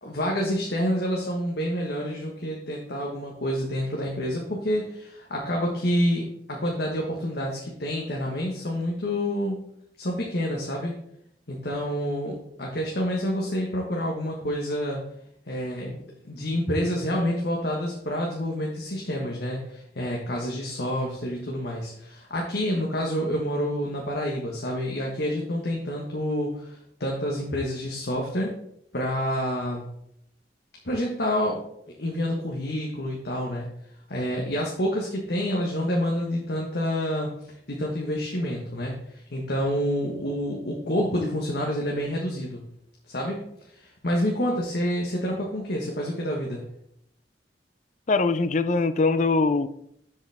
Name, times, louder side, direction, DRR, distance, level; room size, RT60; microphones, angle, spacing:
voice 1, 0.0-9.6 10.0-10.9 11.5-15.0 15.5-15.9 16.2-28.6 28.9-29.8 30.8-31.6 32.0-33.7 34.1-37.3 37.7-42.6 43.1-43.4 43.7-46.6, equal, 60° left, -1 dB, 1.4 m, -28 dB
voice 2, 48.1-49.7, left 3 dB, 45° left, 13 dB, 0.5 m, -22 dB
12.5 x 5.4 x 3.5 m, 0.72 s
head